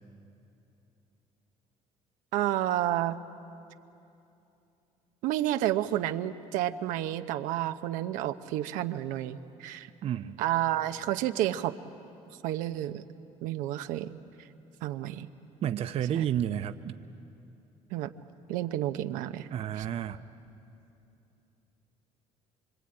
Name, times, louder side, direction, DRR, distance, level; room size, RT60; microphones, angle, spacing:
voice 1, 2.3-3.2 5.2-9.9 10.4-11.8 12.4-13.0 13.4-14.1 14.4-14.5 14.8-15.3 16.1-16.2 17.9-18.1 18.5-19.5 19.8-19.9, right 13 dB, 85° right, 9 dB, 0.8 m, -30 dB
voice 2, 10.0-10.4 15.6-17.0 19.5-20.2, right 10 dB, 50° right, 11 dB, 0.7 m, -31 dB
25.0 x 24.5 x 8.8 m, 2.8 s
cardioid pair, 125°, 13 cm